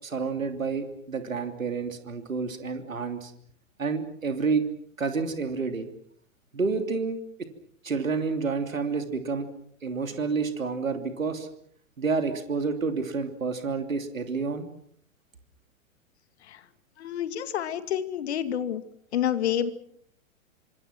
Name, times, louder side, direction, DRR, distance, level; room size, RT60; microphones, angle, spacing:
voice 1, 0.0-3.3 3.8-4.6 5.0-5.9 6.5-7.2 7.8-9.5 9.8-11.5 12.0-14.7, right 4 dB, 75° right, 7 dB, 3.1 m, -29 dB
voice 2, 17.0-18.8 19.1-19.7, left 10 dB, 50° left, 11 dB, 2.4 m, -28 dB
26.5 x 25.5 x 6.1 m, 0.64 s
figure-of-eight pair, 105°, 40 cm